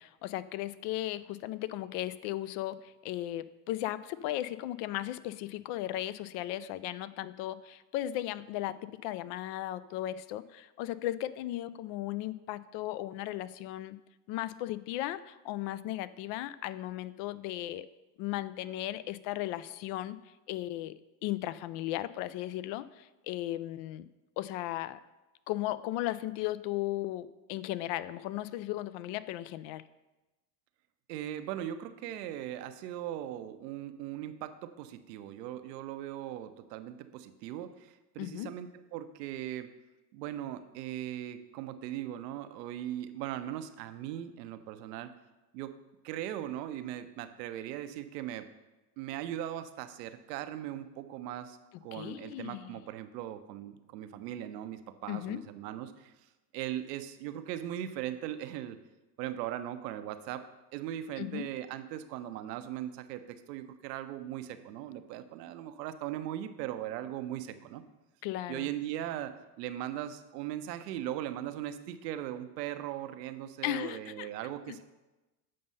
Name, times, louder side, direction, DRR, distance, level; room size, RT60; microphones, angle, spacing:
voice 1, 0.0-14.0 14.3-17.9 18.2-20.2 20.5-20.9 21.2-24.1 24.4-25.0 25.5-29.8 38.2-38.5 51.9-52.7 55.1-55.4 61.2-61.4 68.2-68.7 73.6-74.3 74.7-74.8, left 14 dB, 60° left, 16 dB, 0.5 m, -36 dB
voice 2, 31.1-39.7 40.1-45.1 45.5-45.7 46.0-48.5 49.0-56.1 56.5-58.8 59.2-67.8 68.5-74.8, right 12 dB, 85° right, 10 dB, 0.8 m, -39 dB
7.7 x 5.4 x 5.4 m, 1.1 s
supercardioid pair, 100°, 48 cm